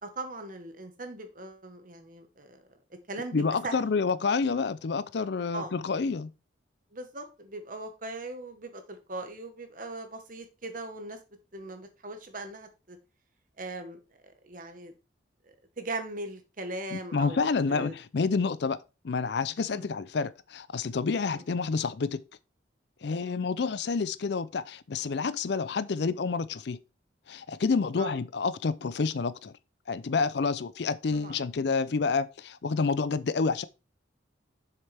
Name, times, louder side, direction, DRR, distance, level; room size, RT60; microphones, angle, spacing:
voice 1, 0.0-3.8 5.5-5.7 6.9-11.2 11.5-13.0 13.6-14.9 15.4-18.0 19.7-19.9 21.3-21.4 23.2-23.4 28.0-28.1 31.1-31.4, right 2 dB, 45° right, 1.3 m, -40 dB
voice 2, 3.3-6.3 16.9-18.8 19.0-22.2 23.0-26.8 27.3-29.5 29.9-33.6, left 4 dB, 60° left, 0.5 m, -29 dB
7.3 x 6.6 x 3.4 m
head